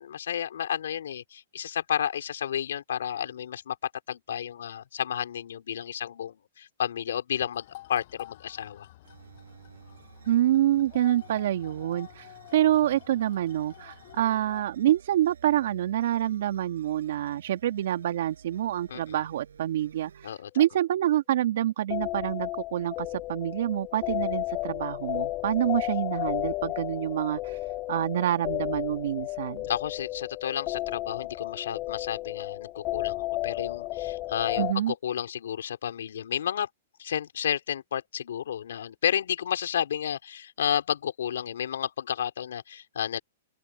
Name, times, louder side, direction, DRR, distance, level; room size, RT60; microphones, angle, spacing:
voice 1, 0.0-8.9 18.9-19.2 20.2-20.6 29.7-36.7 37.0-43.2, left 9 dB, 80° left, 4.3 m, -32 dB
sound 1, 7.5-14.6, left 16 dB, 55° left, 6.5 m, -49 dB
sound 2, 9.0-20.3, right 7 dB, 90° right, 6.5 m, -53 dB
voice 2, 10.3-29.7 34.6-34.9, right 12 dB, 70° right, 1.8 m, -27 dB
sound 3, 21.9-34.7, left 18 dB, 35° left, 0.5 m, -33 dB
open air
hypercardioid pair, 135°, 0 cm